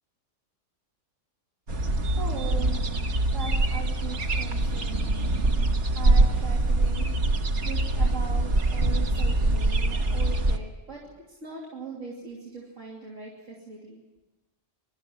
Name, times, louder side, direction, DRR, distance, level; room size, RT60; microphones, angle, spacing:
sound 1, 1.7-10.6, right 2 dB, 65° right, 1.7 m, -24 dB
voice 1, 2.1-2.8 3.3-5.2 5.9-7.3 7.6-14.0, right 4 dB, 85° right, -4 dB, 3.4 m, -40 dB
24.0 x 12.5 x 9.8 m, 1.1 s
omnidirectional pair, 1.3 m